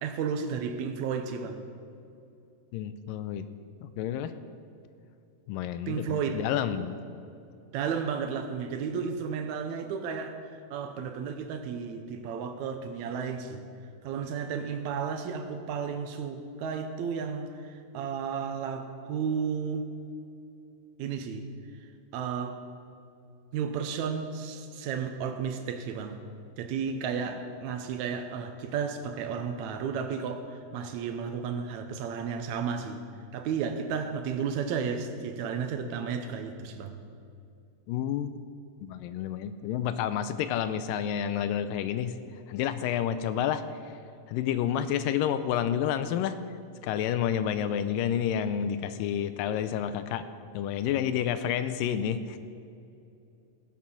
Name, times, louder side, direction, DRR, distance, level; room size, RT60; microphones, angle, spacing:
voice 1, 0.0-1.7 5.9-6.4 7.7-13.7 14.0-19.9 21.0-21.5 22.1-22.6 23.5-26.2 26.6-33.1 33.3-37.0, right 6 dB, 75° right, 7 dB, 1.8 m, -33 dB
voice 2, 2.7-3.5 3.8-4.3 5.5-7.0 37.9-38.4 38.8-42.2 42.5-43.6 44.3-46.4 46.8-50.3 50.5-52.4, left 9 dB, 85° left, 12 dB, 2.2 m, -29 dB
16.5 x 7.5 x 5.6 m, 2.6 s
omnidirectional pair, 4.0 m